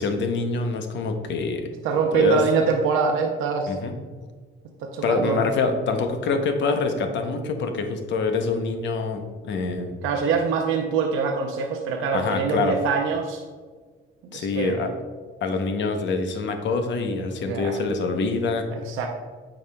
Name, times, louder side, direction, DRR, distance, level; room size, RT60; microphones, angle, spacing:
voice 1, 0.0-1.7 2.1-2.4 3.7-3.9 5.0-9.9 12.1-12.7 14.3-14.9 15.4-18.7, left 4 dB, 65° left, 6 dB, 0.8 m, -25 dB
voice 2, 1.8-3.8 4.8-5.4 10.0-13.4 14.3-14.9 17.4-17.8 18.7-19.1, right 5 dB, 90° right, 2 dB, 0.6 m, -24 dB
8.6 x 4.9 x 2.3 m, 1.5 s
cardioid pair, 105°, 20 cm